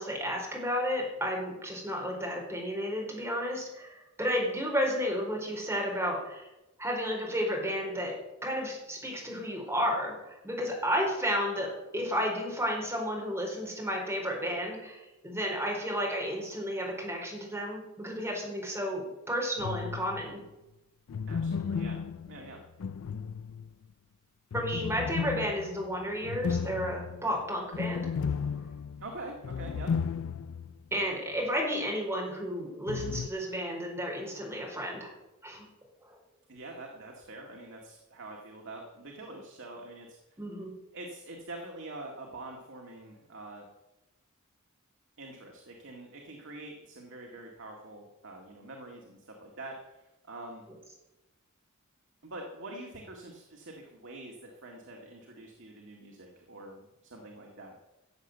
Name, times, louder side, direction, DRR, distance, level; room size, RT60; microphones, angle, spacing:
voice 1, 0.0-6.5 6.8-8.1 8.4-19.0 19.3-20.4 24.5-28.1 30.9-35.1 35.4-35.7 36.1-36.2 40.4-40.7, equal, 10° right, -2 dB, 4.4 m, -32 dB
sound 1, 19.6-20.3 21.1-23.8 24.5-30.7 31.0-31.1 32.9-33.3, left 6 dB, 65° left, 0.4 m, -34 dB
voice 2, 21.3-22.6 29.0-29.9 36.5-40.4 40.9-43.7 45.2-50.6 52.2-57.8, right 2 dB, 60° right, 1 dB, 2.0 m, -45 dB
14.5 x 7.7 x 8.0 m, 0.99 s
head